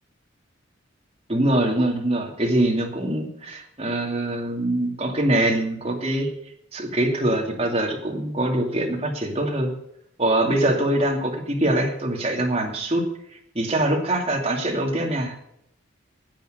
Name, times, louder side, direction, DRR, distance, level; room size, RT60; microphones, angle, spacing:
voice 1, 1.3-6.3 6.7-9.7 10.2-13.0 13.5-15.4, right 1 dB, 30° right, 0 dB, 2.6 m, -23 dB
10.5 x 8.9 x 8.0 m, 0.74 s
head